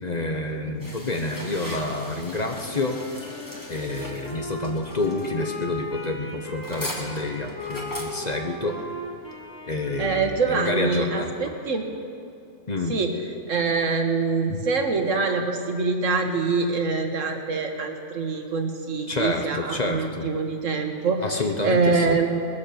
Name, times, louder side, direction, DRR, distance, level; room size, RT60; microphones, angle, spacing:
voice 1, 0.0-3.0 3.7-8.8 9.7-11.5 12.7-13.0 14.5-14.6 19.1-20.3 21.2-22.2, left 2 dB, 35° left, 3 dB, 1.1 m, -28 dB
sound 1, 0.8-9.5, equal, 15° left, 1.9 m, -40 dB
Wind instrument woodwind instrument, 2.6-11.5, left 1 dB, 70° left, 3.7 m, -37 dB
voice 2, 10.0-11.9 12.9-13.2 13.5-21.2 21.6-22.4, right 4 dB, 80° right, 4 dB, 1.7 m, -24 dB
20.0 x 9.9 x 6.9 m, 2.6 s
omnidirectional pair, 1.3 m